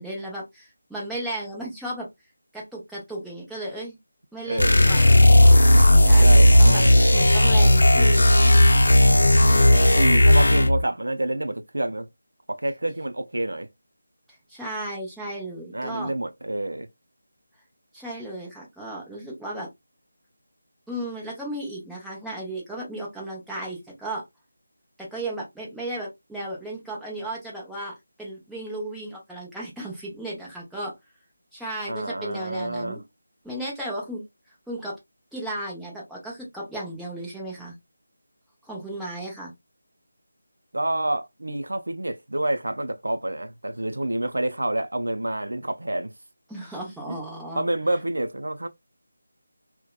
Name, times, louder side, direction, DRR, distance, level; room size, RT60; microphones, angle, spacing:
voice 1, 0.0-2.1 2.5-4.0 4.3-5.2 5.7-6.8 7.1-8.5 9.5-10.2 14.5-16.1 17.9-19.7 20.9-24.3 25.0-30.9 31.5-33.0 33.4-34.2 34.7-35.0 35.3-37.8 38.6-39.5 46.5-47.7, right 1 dB, ahead, 0.6 m, -35 dB
voice 2, 4.5-5.4 6.2-7.1 9.3-12.1 12.5-13.7 15.7-16.9 31.9-33.0 40.7-46.1 47.1-47.2 47.5-48.7, right 1 dB, 90° right, 0.4 m, -28 dB
sound 1, 4.6-10.8, left 1 dB, 75° left, 0.6 m, -15 dB
2.7 x 2.1 x 2.2 m
figure-of-eight pair, 170°, 0 cm